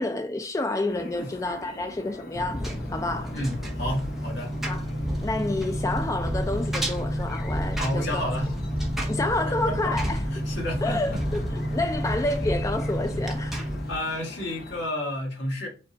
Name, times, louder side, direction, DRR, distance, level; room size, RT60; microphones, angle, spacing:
voice 1, 0.0-3.4 4.6-4.9 5.2-8.2 9.1-10.2 10.8-13.6, left 2 dB, 20° left, 0.4 m, -29 dB
sound 1, 0.9-14.9, left 2 dB, 55° left, 0.6 m, -44 dB
Engine, 2.3-13.9, equal, ahead, 0.7 m, -29 dB
voice 2, 3.3-4.5 7.8-8.5 9.1-9.2 9.7-11.2 13.9-15.7, left 1 dB, 85° left, 1.7 m, -31 dB
5.0 x 2.3 x 4.0 m
head